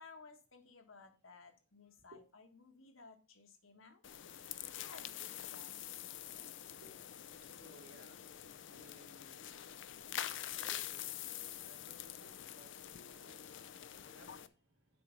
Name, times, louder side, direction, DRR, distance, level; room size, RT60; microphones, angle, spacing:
voice 1, 0.0-4.0 4.7-6.5, left 4 dB, 85° left, 1.6 m, -58 dB
sound 1, 4.0-14.5, left 11 dB, 65° left, 0.5 m, -46 dB
voice 2, 6.8-15.0, right 1 dB, 60° right, 2.3 m, -63 dB
7.7 x 5.1 x 5.2 m
head